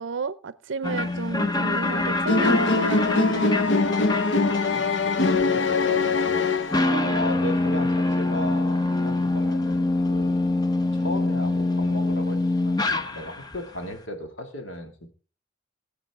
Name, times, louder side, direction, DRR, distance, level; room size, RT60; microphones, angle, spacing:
voice 1, 0.0-3.7 6.9-7.2, right 5 dB, 75° right, 17 dB, 0.5 m, -32 dB
sound 1, 0.8-13.6, left 2 dB, 20° left, 0.7 m, -25 dB
sound 2, 2.3-7.1, left 3 dB, 65° left, 0.8 m, -22 dB
voice 2, 4.9-10.3 10.9-15.1, left 1 dB, 85° left, 4 dB, 2.3 m, -36 dB
19.5 x 8.1 x 3.6 m, 0.37 s
head